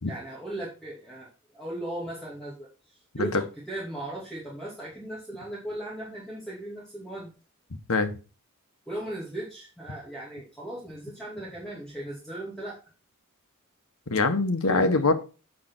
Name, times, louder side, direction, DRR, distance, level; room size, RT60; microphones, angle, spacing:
voice 1, 0.0-7.3 8.9-12.8 14.6-15.0, right 1 dB, 5° left, -6 dB, 2.8 m, -37 dB
voice 2, 14.1-15.1, left 3 dB, 75° left, 9 dB, 1.3 m, -23 dB
8.7 x 4.9 x 6.1 m, 0.33 s
head